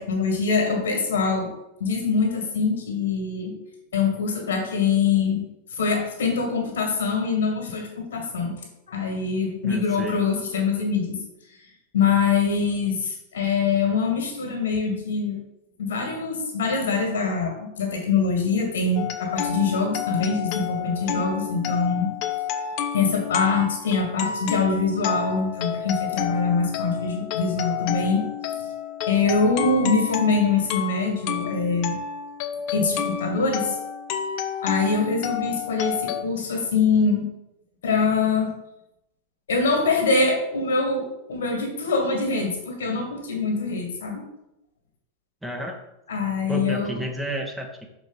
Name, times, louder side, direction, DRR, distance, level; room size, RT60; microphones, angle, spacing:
voice 1, 0.0-1.5 1.8-3.5 3.9-5.4 5.7-8.6 8.9-11.2 11.9-15.4 15.8-22.1 22.9-28.2 29.1-32.0 32.7-33.8 34.6-37.3 37.8-38.6 39.5-44.2 46.1-47.0, left 4 dB, 65° left, 2 dB, 1.8 m, -24 dB
voice 2, 9.6-10.2 45.4-45.8 46.5-47.9, right 1 dB, 5° right, 2 dB, 0.9 m, -31 dB
sound 1, 19.0-36.2, left 8 dB, 45° left, 0.6 m, -30 dB
6.3 x 4.6 x 4.0 m, 0.88 s
figure-of-eight pair, 90°, 0 cm